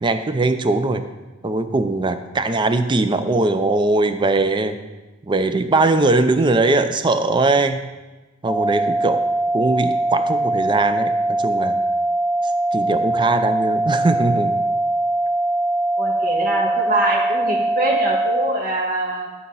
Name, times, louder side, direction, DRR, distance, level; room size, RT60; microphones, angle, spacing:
voice 1, 0.0-1.0 1.4-4.8 5.2-7.8 8.4-9.2 9.5-11.8 12.7-14.5, right 2 dB, 25° right, 9 dB, 0.5 m, -20 dB
sound 1, 8.5-18.5, right 2 dB, 10° left, 1.7 m, -21 dB
voice 2, 16.0-19.3, right 1 dB, 45° right, -1 dB, 1.7 m, -23 dB
11.0 x 4.2 x 5.5 m, 1.2 s
head